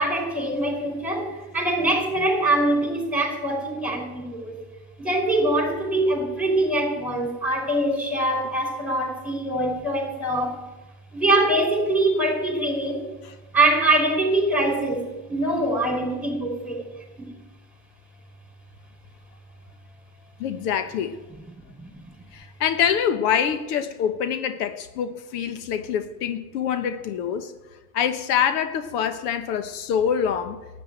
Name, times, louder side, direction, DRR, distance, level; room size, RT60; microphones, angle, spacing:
voice 1, 0.0-4.6 5.0-10.5 11.1-13.0 13.5-16.8 17.2-17.3 21.8-22.0, right 1 dB, ahead, 2 dB, 5.0 m, -23 dB
voice 2, 20.4-21.2 22.3-27.5 27.9-30.6, left 8 dB, 80° left, 10 dB, 1.3 m, -25 dB
12.5 x 9.9 x 9.0 m, 1.1 s
supercardioid pair, 110°, 47 cm